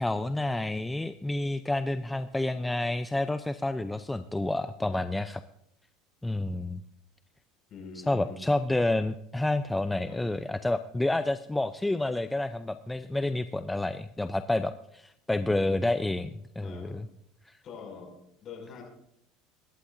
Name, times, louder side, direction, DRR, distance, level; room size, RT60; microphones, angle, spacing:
voice 1, 0.0-5.4 6.2-6.8 8.1-16.3 16.6-17.1 17.5-17.6, left 2 dB, 10° left, 11 dB, 0.4 m, -29 dB
voice 2, 7.7-8.4 10.1-10.3 16.6-17.0 17.6-18.2 18.4-18.8, left 5 dB, 40° left, 1 dB, 5.8 m, -44 dB
22.0 x 11.5 x 2.6 m, 0.76 s
supercardioid pair, 115°, 0 cm